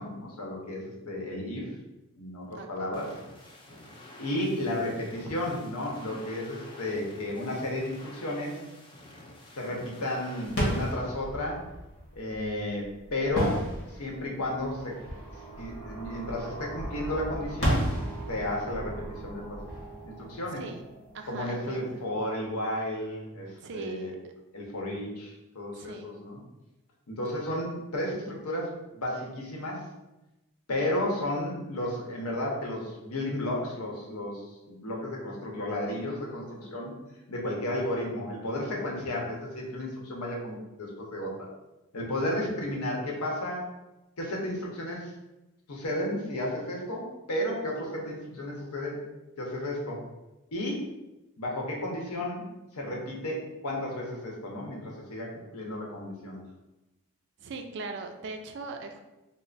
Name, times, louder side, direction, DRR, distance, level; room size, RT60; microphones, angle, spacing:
voice 1, 0.0-1.7 2.2-3.1 4.2-8.6 9.6-11.6 12.1-15.0 15.6-18.0 18.3-19.6 20.0-20.6 21.3-24.2 24.5-26.4 27.1-29.8 30.7-36.9 37.3-41.5 41.9-43.6 44.2-45.1 45.7-49.0 49.4-50.0 50.5-50.8 51.4-52.4 52.7-56.4, left 1 dB, 90° left, -1 dB, 0.9 m, -33 dB
voice 2, 2.5-2.9 3.7-4.0 20.6-20.8 21.1-22.0 23.6-24.2 25.7-26.1 57.4-59.0, right 3 dB, 50° right, 5 dB, 0.3 m, -40 dB
sound 1, 2.9-10.9, left 1 dB, 20° left, 0.4 m, -49 dB
sound 2, 10.5-21.1, equal, 45° left, 1.2 m, -34 dB
sound 3, 14.4-21.8, right 3 dB, 5° right, 1.1 m, -45 dB
3.2 x 2.0 x 3.8 m, 1.0 s
head